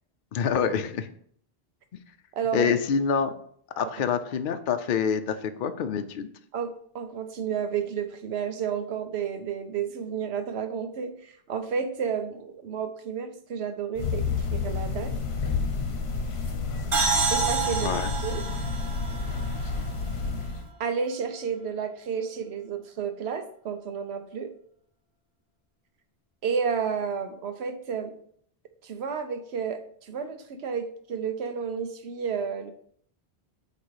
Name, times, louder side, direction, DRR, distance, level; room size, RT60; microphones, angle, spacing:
voice 1, 0.3-1.1 2.5-3.3 3.8-6.3 17.8-18.1, left 6 dB, 60° left, 8 dB, 0.7 m, -26 dB
voice 2, 2.3-2.7 6.5-15.1 17.3-17.9 18.2-18.4 20.8-24.5 26.4-28.1 28.8-32.7, right 6 dB, 80° right, 8 dB, 1.0 m, -31 dB
sound 1, 14.0-20.7, left 4 dB, 75° left, 1.2 m, -30 dB
sound 2, 16.9-20.5, right 4 dB, 55° right, 1.4 m, -29 dB
8.3 x 2.9 x 4.7 m, 0.62 s
omnidirectional pair, 1.1 m